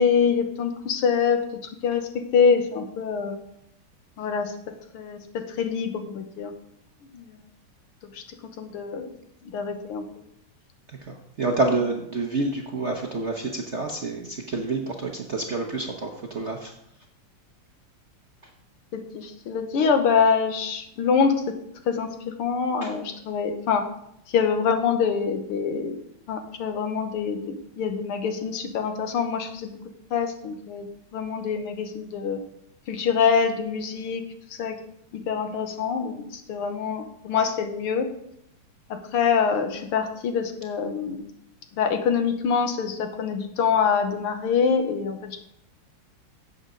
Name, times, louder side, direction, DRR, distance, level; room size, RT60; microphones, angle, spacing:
voice 1, 0.0-3.4 4.2-4.5 4.9-6.5 7.1-7.4 8.1-8.2 8.6-9.1 9.4-10.2 18.9-21.4 21.9-23.9 24.3-26.0 26.3-29.7 30.1-32.4 32.9-34.3 34.6-34.8 35.1-38.1 38.9-41.2 41.8-45.4, left 6 dB, 85° left, 7 dB, 1.9 m, -25 dB
voice 2, 10.9-16.7 22.8-22.9, right 3 dB, 55° right, 1 dB, 0.8 m, -28 dB
11.0 x 8.0 x 3.8 m, 0.75 s
omnidirectional pair, 2.4 m